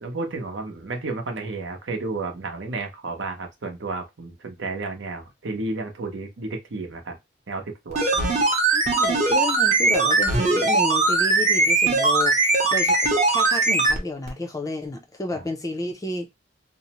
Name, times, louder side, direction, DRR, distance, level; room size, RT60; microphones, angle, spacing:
voice 1, 0.0-7.2 7.5-8.3 15.3-15.5, right 3 dB, 80° right, 0.7 m, -32 dB
sound 1, 7.9-14.0 14.3-14.4, right 3 dB, 40° right, 0.7 m, -20 dB
voice 2, 8.7-12.3 12.7-13.0 13.3-16.3, left 2 dB, 20° left, 0.4 m, -31 dB
2.6 x 2.0 x 2.8 m
head